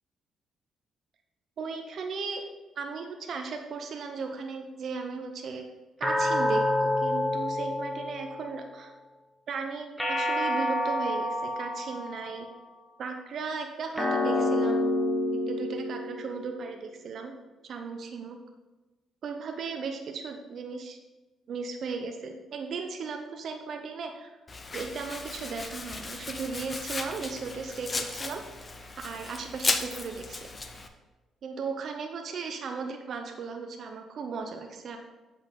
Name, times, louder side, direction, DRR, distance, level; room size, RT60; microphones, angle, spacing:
voice 1, 1.6-2.4 2.8-5.6 6.0-8.9 9.5-12.5 13.0-14.8 15.5-17.3 17.6-18.4 19.2-21.0 21.5-24.3 24.7-28.4 29.0-30.5 31.4-35.0, right 5 dB, 60° right, 4 dB, 0.6 m, -36 dB
sound 1, 6.0-8.6 10.0-12.5 14.0-16.6, left 1 dB, 5° left, 1.3 m, -28 dB
Domestic sounds home sounds, 24.5-30.9, left 3 dB, 30° left, 0.7 m, -35 dB
7.4 x 5.3 x 3.8 m, 1.2 s
cardioid pair, 90°, 0 cm